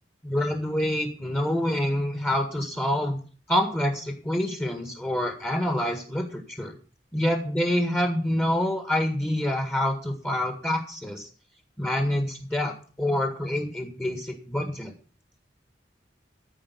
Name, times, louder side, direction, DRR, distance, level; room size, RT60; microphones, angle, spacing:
voice 1, 0.2-3.2 3.5-6.7 7.1-11.3 11.8-14.9, left 1 dB, 10° left, 3 dB, 1.8 m, -27 dB
14.0 x 5.2 x 8.5 m, 0.41 s
head